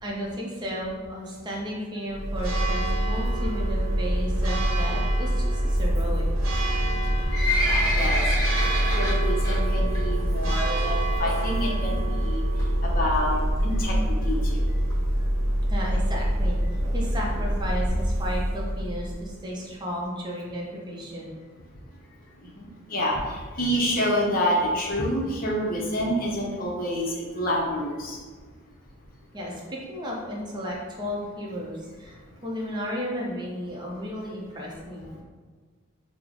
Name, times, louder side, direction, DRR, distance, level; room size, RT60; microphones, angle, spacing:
voice 1, 0.0-6.2 15.7-16.6 16.9-21.3 29.3-35.2, equal, 20° right, -3 dB, 0.6 m, -34 dB
Church bell, 2.1-19.4, right 1 dB, 85° right, 0.8 m, -25 dB
Livestock farm animals working animals, 6.9-9.6 9.9-10.2 10.5-10.6 11.3-11.4 11.7-11.8 12.0-12.1 12.6-12.9 13.4-13.5 13.8-13.9 14.0-14.1 14.3-14.4 14.9-15.0 15.5-15.6 16.0-16.1, equal, 20° left, 1.4 m, -27 dB
voice 2, 7.6-8.2 8.5-8.7 9.0-12.4 12.8-14.6 22.6-28.2, equal, 45° left, -3 dB, 0.6 m, -28 dB
3.1 x 2.0 x 3.7 m, 1.5 s
head